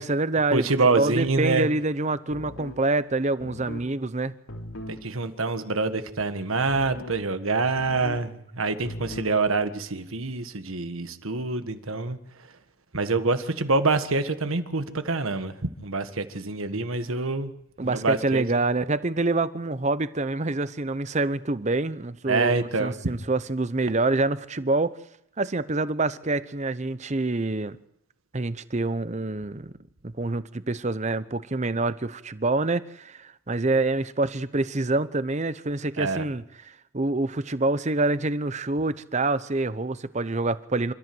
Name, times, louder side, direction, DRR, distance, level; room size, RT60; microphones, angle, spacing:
voice 1, 0.0-0.6 1.0-4.3 17.8-25.0 25.4-27.8 28.3-29.7 30.0-40.9, right 2 dB, 35° right, 0.8 m, -26 dB
voice 2, 0.5-1.7 4.9-12.2 12.9-17.5 17.8-18.4 22.3-22.9 36.0-36.3, right 3 dB, 80° right, 1.6 m, -26 dB
sound 1, 2.3-2.8 3.4-3.9 4.5-5.0 6.7-7.2 7.8-8.3 8.8-9.4, left 1 dB, 85° left, 3.9 m, -39 dB
27.0 x 14.0 x 7.8 m
head